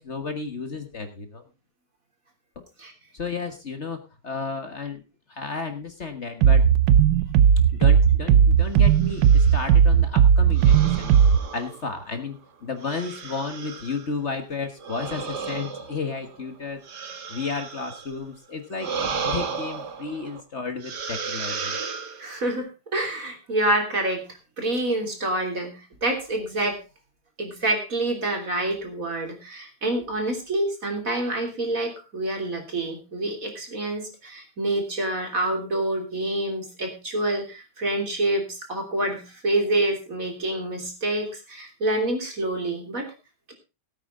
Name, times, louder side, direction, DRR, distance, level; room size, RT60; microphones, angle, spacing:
voice 1, 0.0-1.4 2.5-2.6 3.1-4.0 4.2-5.0 5.3-6.6 7.8-11.1 11.5-16.8 17.3-18.9 19.2-21.8, left 4 dB, 45° left, 7 dB, 1.6 m, -32 dB
sound 1, 6.4-11.4, right 8 dB, 90° right, 1.4 m, -17 dB
sound 2, 9.0-9.7 10.6-12.2 12.8-14.1 14.8-18.2 18.7-20.4 20.8-22.5, right 5 dB, 75° right, 2.2 m, -34 dB
voice 2, 22.2-24.3 24.6-26.8 27.4-43.0, right 1 dB, 50° right, 2 dB, 3.6 m, -27 dB
17.5 x 9.1 x 3.7 m, 0.29 s
omnidirectional pair, 1.8 m